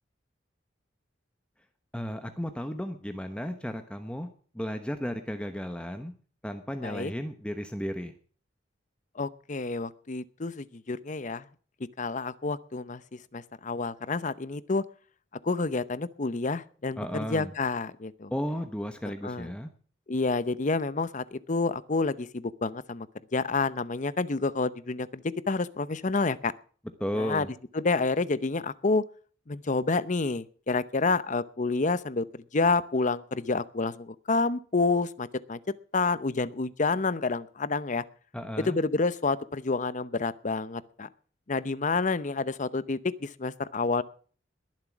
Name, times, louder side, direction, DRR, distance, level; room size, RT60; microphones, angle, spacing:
voice 1, 1.9-4.3 4.5-6.1 6.4-8.1 17.0-17.5 18.3-19.7 27.0-27.5 38.3-38.8, equal, 5° left, 7 dB, 1.0 m, -34 dB
voice 2, 9.2-11.4 12.0-13.0 13.3-14.8 15.4-18.3 19.2-19.5 20.1-23.1 23.3-26.5 27.1-27.5 27.7-29.0 29.5-32.3 32.5-35.6 35.9-38.0 38.6-41.1 41.5-44.0, left 3 dB, 45° left, 16 dB, 0.8 m, -29 dB
21.5 x 7.5 x 6.1 m, 0.43 s
head